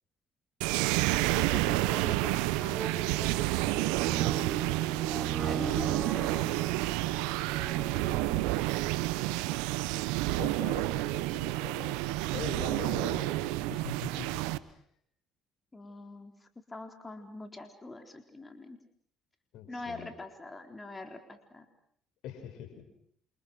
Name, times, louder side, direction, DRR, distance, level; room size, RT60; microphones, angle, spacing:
sound 1, 0.6-14.6, right 18 dB, 85° right, 1.1 m, -30 dB
voice 1, 1.0-4.3 5.5-6.7 7.5-8.6 9.3-9.6 15.7-18.8 19.7-21.7, left 2 dB, 25° left, 5 dB, 4.1 m, -45 dB
sound 2, 2.7-8.6 9.3-9.4, right 6 dB, 40° right, 3.6 m, -38 dB
voice 2, 10.4-12.0 12.3-14.8 19.5-20.1 22.2-22.8, left 8 dB, 70° left, 6 dB, 6.5 m, -43 dB
28.5 x 27.0 x 6.4 m, 0.65 s
supercardioid pair, 65°, 0 cm